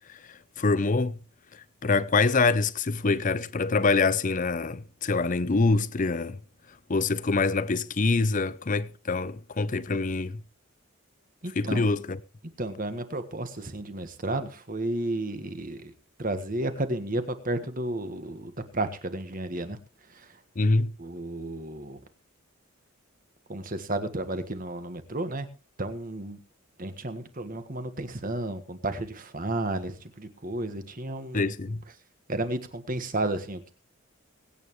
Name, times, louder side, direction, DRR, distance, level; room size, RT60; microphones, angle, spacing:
voice 1, 0.1-1.2 1.5-6.4 6.9-10.4 11.6-12.2 20.6-20.9 31.3-31.8, left 3 dB, 40° left, 0.6 m, -25 dB
voice 2, 11.4-11.9 12.6-15.9 16.2-19.8 20.1-20.3 21.0-22.0 23.5-25.5 25.8-26.4 26.8-31.5 32.3-33.7, right 1 dB, 40° right, 1.6 m, -32 dB
22.5 x 9.3 x 3.2 m
head